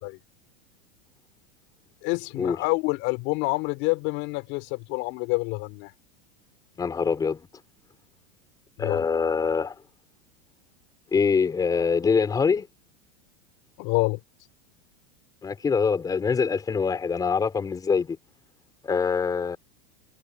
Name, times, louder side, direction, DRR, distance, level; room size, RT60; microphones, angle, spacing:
voice 1, 2.0-5.9 8.8-9.1 13.8-14.2, left 25 dB, 40° left, 4.6 m, -27 dB
voice 2, 6.8-7.4 8.8-9.7 11.1-12.7 15.4-18.2 18.8-19.6, left 5 dB, 10° left, 5.1 m, -24 dB
supercardioid pair, 175°, 32 cm